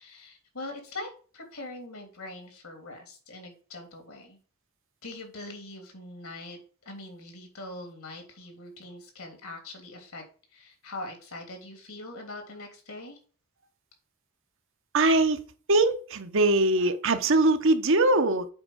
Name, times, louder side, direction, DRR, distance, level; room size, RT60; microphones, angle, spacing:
voice 1, 0.0-4.4 5.0-6.6 6.8-10.2 10.5-13.2, left 2 dB, 70° left, 3.0 m, -42 dB
voice 2, 14.9-15.4 15.7-18.5, right 2 dB, 60° right, 1.0 m, -22 dB
7.8 x 4.8 x 6.4 m
head